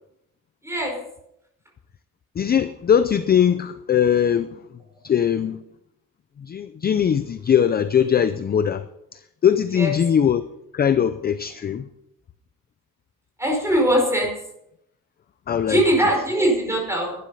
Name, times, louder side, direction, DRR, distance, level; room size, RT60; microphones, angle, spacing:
voice 1, 0.6-0.9 9.7-9.9 13.4-14.4 15.7-17.1, right 1 dB, 10° right, 5.0 m, -21 dB
voice 2, 2.4-4.6 5.0-5.6 6.4-8.8 9.1-10.4 10.7-11.9 15.5-15.8, left 8 dB, 30° left, 0.5 m, -20 dB
12.0 x 12.0 x 5.6 m
cardioid pair, 160°, 33 cm